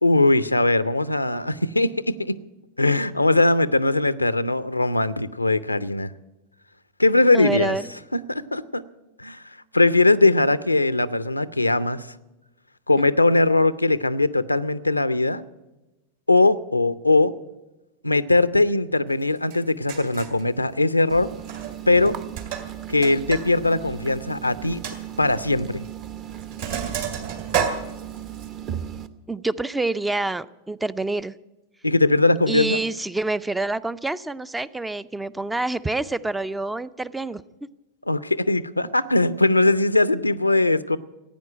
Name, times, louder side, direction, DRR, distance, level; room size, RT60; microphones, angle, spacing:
voice 1, 0.0-2.4 2.8-6.1 7.0-7.8 8.1-8.8 9.2-9.4 9.7-12.1 12.9-15.4 16.3-17.3 18.0-21.3 21.9-22.1 22.9-24.8 25.2-25.8 31.8-32.8 38.1-41.0, left 2 dB, 85° left, 16 dB, 0.5 m, -20 dB
voice 2, 7.3-7.9 29.3-31.3 32.5-37.4, right 2 dB, 5° right, 17 dB, 0.4 m, -27 dB
Sink (filling or washing), 19.5-19.6 19.9-20.4 21.4-21.8 22.0-23.5 23.8-23.9 24.3-24.4 24.8-25.0 25.8-26.0 26.3-28.5, right 7 dB, 60° right, 2.6 m, -30 dB
sound 1, 21.1-29.1, right 10 dB, 35° right, 0.8 m, -36 dB
15.5 x 9.5 x 8.9 m, 1.0 s
figure-of-eight pair, 90°, 0 cm